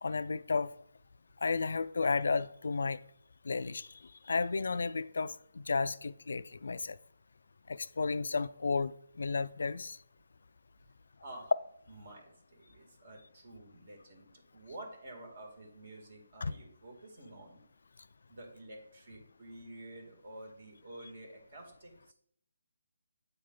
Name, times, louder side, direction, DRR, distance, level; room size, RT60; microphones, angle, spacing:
voice 1, 0.0-0.7 1.4-3.0 3.5-3.9 4.3-5.3 5.7-7.0 7.7-8.9 9.2-10.0 16.4-16.5, left 4 dB, 70° left, 0.3 m, -32 dB
voice 2, 11.9-17.6 18.3-22.1, right 1 dB, 55° right, 1.8 m, -50 dB
8.2 x 3.3 x 3.7 m
hypercardioid pair, 165°, 0 cm